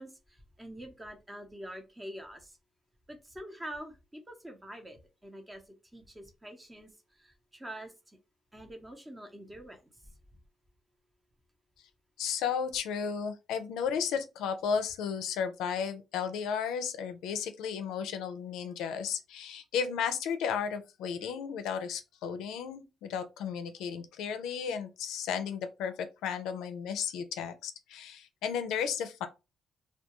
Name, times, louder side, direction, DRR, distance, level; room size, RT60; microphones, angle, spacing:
voice 1, 0.0-2.6 3.1-8.2 8.5-9.8 10.1-10.2, right 1 dB, 15° right, 0.7 m, -46 dB
voice 2, 12.2-29.3, left 7 dB, 90° left, 0.4 m, -34 dB
2.2 x 2.2 x 2.9 m
cardioid pair, 90°, 0 cm